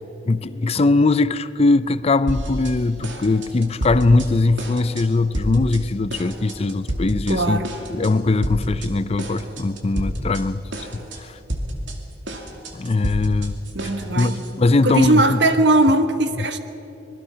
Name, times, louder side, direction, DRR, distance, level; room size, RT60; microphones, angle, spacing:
voice 1, 0.3-7.6 7.9-11.4 12.7-13.6 14.1-15.4 16.4-16.5, left 3 dB, 35° left, 15 dB, 0.5 m, -20 dB
sound 1, 2.3-2.8 3.0-4.3 4.6-5.1 5.3-5.8 6.1-7.4 7.6-8.1 8.4-8.9 9.2-10.4 10.7-11.2 11.5-14.5, right 1 dB, 90° right, 2.6 m, -30 dB
voice 2, 7.3-7.7 13.7-16.6, right 2 dB, 65° right, 8 dB, 1.4 m, -20 dB
26.0 x 20.5 x 5.7 m, 3.0 s
head